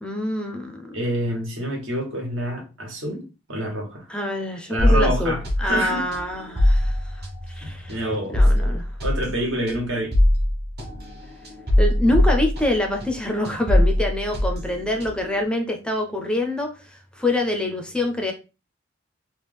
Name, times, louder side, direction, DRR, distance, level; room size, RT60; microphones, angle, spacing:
voice 1, 0.0-1.0 4.1-8.0 8.3-8.8 11.8-18.3, left 1 dB, 5° left, 0.4 m, -26 dB
voice 2, 0.9-3.2 3.5-4.1 4.7-6.0 7.6-8.4 9.0-10.1, right 1 dB, 80° right, 1.3 m, -27 dB
sound 1, 4.8-13.2 13.4-15.4, left 1 dB, 50° right, 1.0 m, -22 dB
3.1 x 2.4 x 3.4 m
head